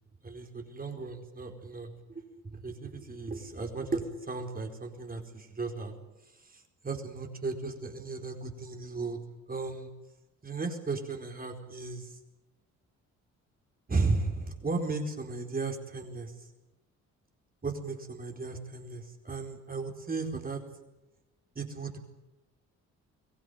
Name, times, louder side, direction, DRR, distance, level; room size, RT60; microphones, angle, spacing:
voice 1, 0.2-5.9 6.4-9.2 9.5-9.9 10.4-12.1 13.9-16.3 17.6-20.6 21.5-22.0, right 3 dB, 30° right, 4 dB, 4.5 m, -35 dB
23.5 x 17.0 x 9.9 m, 1.0 s
cardioid pair, 90°, 30 cm